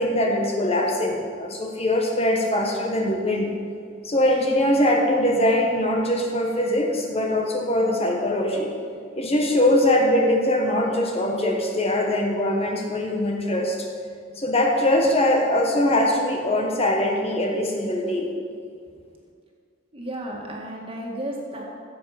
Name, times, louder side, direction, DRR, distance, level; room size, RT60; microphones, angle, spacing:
voice 1, 0.0-3.5 4.0-8.7 9.2-13.8 14.4-18.3, left 1 dB, 30° left, 1 dB, 1.2 m, -22 dB
voice 2, 19.9-21.6, right 1 dB, 30° right, -1 dB, 2.0 m, -33 dB
15.0 x 7.6 x 5.9 m, 2.2 s
head